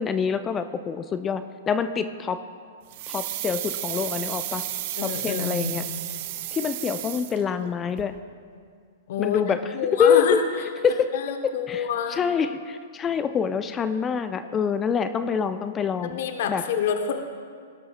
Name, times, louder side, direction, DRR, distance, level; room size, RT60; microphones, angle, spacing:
voice 1, 0.0-2.4 3.1-4.6 5.0-5.8 6.5-8.1 9.2-9.6 10.0-10.4 10.8-11.1 11.4-16.2 16.5-16.6, left 6 dB, 20° left, 11 dB, 0.4 m, -25 dB
sound 1, 2.9-7.7 8.0-8.1, right 13 dB, 50° right, 0.8 m, -32 dB
voice 2, 5.0-5.8 9.1-9.4 9.7-10.4 10.9-12.2 16.0-17.3, left 8 dB, 60° left, 6 dB, 0.8 m, -28 dB
17.5 x 11.5 x 2.2 m, 2.1 s
hypercardioid pair, 110°, 0 cm